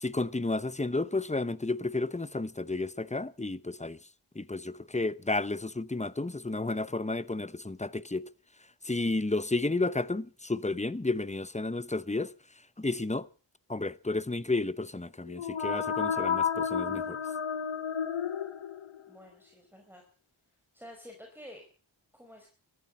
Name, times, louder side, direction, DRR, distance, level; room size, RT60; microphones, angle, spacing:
voice 1, 0.0-4.0 4.3-8.3 8.8-12.3 12.8-13.3 13.7-17.2, left 2 dB, 15° left, 0.9 m, -32 dB
sound 1, 15.3-19.1, left 7 dB, 85° left, 1.1 m, -31 dB
voice 2, 19.1-20.0 20.7-21.6 22.1-22.5, equal, 5° right, 4.9 m, -50 dB
14.0 x 13.5 x 7.4 m
wide cardioid pair, 40°, 48 cm